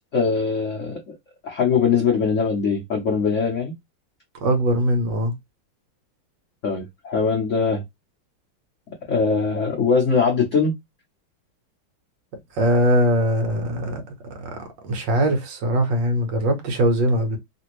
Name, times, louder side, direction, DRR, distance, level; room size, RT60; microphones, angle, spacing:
voice 1, 0.1-1.0 1.4-3.7 6.6-7.8 9.1-10.7, left 5 dB, 65° left, 0.7 m, -21 dB
voice 2, 4.4-5.3 12.6-14.0 14.4-14.6 14.8-17.4, right 1 dB, 65° right, 1.4 m, -21 dB
3.4 x 2.5 x 2.9 m
omnidirectional pair, 2.3 m